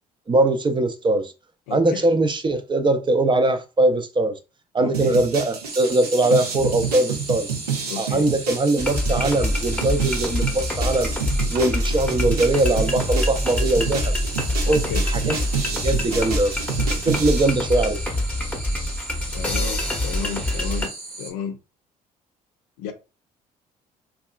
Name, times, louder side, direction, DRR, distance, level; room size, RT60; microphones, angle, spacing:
voice 1, 0.3-1.3 1.7-4.4 4.7-7.5 8.0-11.1 11.5-14.2 14.7-15.4 15.7-16.6 17.0-18.0, right 2 dB, 25° right, 0.5 m, -21 dB
voice 2, 1.7-2.0 4.8-5.1 7.9-8.2 14.6-15.0 19.3-20.9 21.2-21.6 22.8-22.9, left 8 dB, 75° left, 0.5 m, -32 dB
sound 1, 4.9-17.5, right 6 dB, 90° right, 0.6 m, -29 dB
sound 2, 5.7-21.3, right 2 dB, 55° right, 1.1 m, -37 dB
sound 3, 8.8-20.9, left 1 dB, 10° left, 0.8 m, -25 dB
2.7 x 2.3 x 2.4 m
hypercardioid pair, 55°, 19 cm